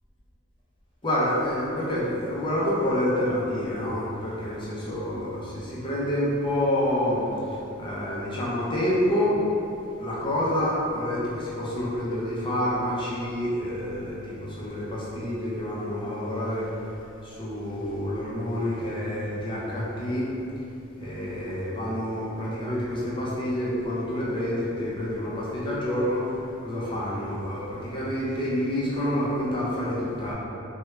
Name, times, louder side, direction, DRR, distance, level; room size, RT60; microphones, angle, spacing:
voice 1, 1.0-9.4 10.0-16.8 17.2-20.3 21.0-30.3, left 1 dB, 25° left, -7 dB, 0.6 m, -28 dB
3.2 x 2.3 x 3.1 m, 2.8 s
head